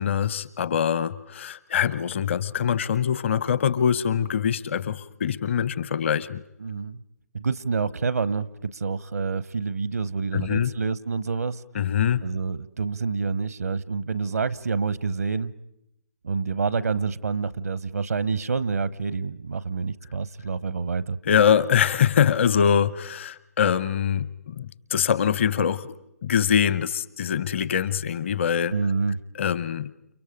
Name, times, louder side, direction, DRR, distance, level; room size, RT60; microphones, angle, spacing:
voice 1, 0.0-6.4 10.3-10.7 11.7-12.2 21.2-25.9 26.2-28.7 29.4-29.9, left 8 dB, 50° left, 17 dB, 0.8 m, -23 dB
voice 2, 6.6-7.0 7.3-11.6 12.2-15.5 16.2-21.2 28.7-29.2, right 4 dB, 75° right, 18 dB, 0.8 m, -27 dB
30.0 x 29.5 x 5.1 m, 0.83 s
figure-of-eight pair, 135°, 8 cm